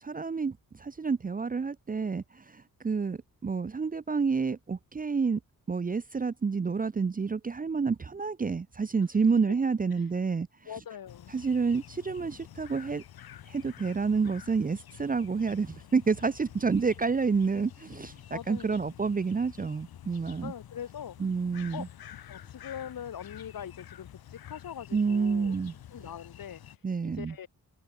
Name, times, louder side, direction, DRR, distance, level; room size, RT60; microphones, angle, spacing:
voice 1, 0.0-5.4 5.7-10.5 11.3-13.0 13.5-20.5 21.2-21.9 24.9-25.7 26.8-27.3, right 5 dB, 25° right, 0.6 m, -29 dB
voice 2, 10.7-11.3 18.3-18.9 20.4-21.2 21.7-21.9 22.3-25.5 25.9-26.6 27.0-27.5, left 9 dB, 65° left, 2.4 m, -42 dB
sound 1, 11.1-26.8, left 10 dB, 85° left, 2.5 m, -49 dB
cardioid pair, 105°, 36 cm